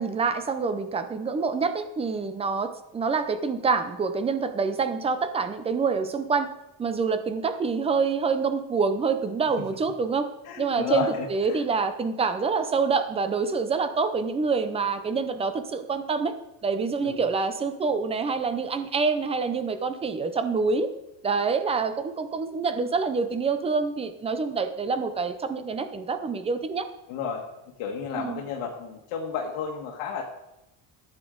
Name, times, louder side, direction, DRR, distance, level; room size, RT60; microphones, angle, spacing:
voice 1, 0.0-6.5 6.8-10.3 10.6-16.3 16.6-20.9 21.2-26.9 28.2-28.4, right 4 dB, 15° right, 10 dB, 0.4 m, -26 dB
voice 2, 10.4-11.6 17.0-17.2 27.1-27.5 27.8-30.3, left 6 dB, 85° left, 0 dB, 1.6 m, -32 dB
13.5 x 8.1 x 3.8 m, 0.92 s
cardioid pair, 165°, 48 cm